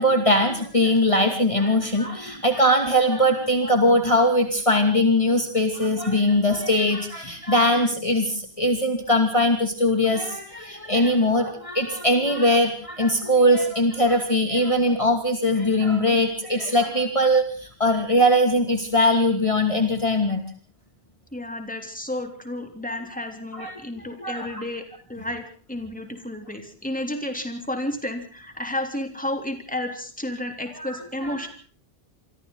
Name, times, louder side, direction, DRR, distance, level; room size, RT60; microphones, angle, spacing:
voice 1, 0.0-20.4 23.5-24.6 30.8-30.9 31.2-31.4, left 1 dB, 30° left, 4 dB, 2.7 m, -21 dB
voice 2, 21.3-31.5, left 1 dB, 5° left, 5 dB, 3.3 m, -32 dB
27.5 x 24.5 x 4.0 m, 0.42 s
omnidirectional pair, 1.1 m